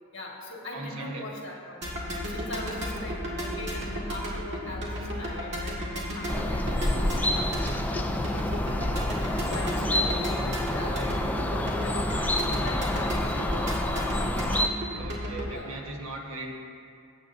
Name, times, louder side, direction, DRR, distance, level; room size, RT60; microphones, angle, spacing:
voice 1, 0.1-1.9 2.3-14.3 15.4-15.7, left 1 dB, 55° left, -2 dB, 1.7 m, -41 dB
voice 2, 0.7-1.3 9.1-9.2 14.9-16.5, right 2 dB, 80° right, 0 dB, 1.3 m, -38 dB
sound 1, 1.8-15.5, equal, 55° right, 1.8 m, -33 dB
sound 2, 6.3-14.7, left 1 dB, 10° left, 0.3 m, -28 dB
16.5 x 8.1 x 2.6 m, 2.4 s
head